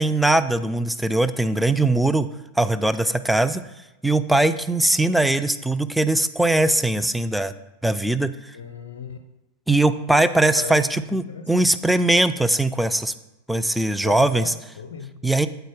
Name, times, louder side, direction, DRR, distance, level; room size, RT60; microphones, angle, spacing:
voice 1, 0.0-2.3 2.6-3.6 4.0-7.5 7.8-8.3 9.7-13.1 13.5-14.5 15.2-15.5, right 2 dB, ahead, 0.3 m, -20 dB
voice 2, 8.5-9.2 10.5-10.8 11.1-11.7 14.0-15.2, left 6 dB, 60° left, 0.6 m, -36 dB
7.9 x 4.2 x 4.7 m
figure-of-eight pair, 90°, 0 cm